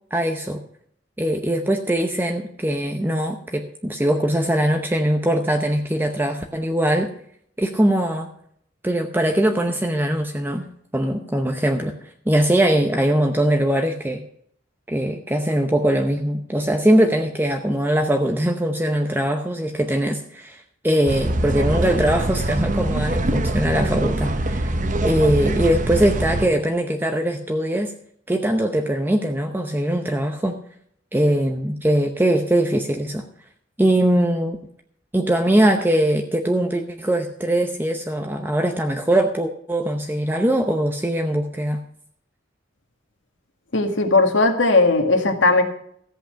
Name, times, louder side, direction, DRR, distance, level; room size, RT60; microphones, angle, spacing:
voice 1, 0.1-0.6 1.2-7.1 7.6-8.3 8.8-10.7 10.9-11.9 12.3-14.2 14.9-24.7 25.0-27.9 28.3-30.6 31.1-33.2 33.8-34.6 35.1-41.8, right 1 dB, 10° right, 4 dB, 0.8 m, -21 dB
sound 1, 21.1-26.5, right 1 dB, 40° right, 0.9 m, -23 dB
voice 2, 43.7-45.6, left 3 dB, 85° left, 5 dB, 1.8 m, -17 dB
14.5 x 8.0 x 5.7 m, 0.66 s
head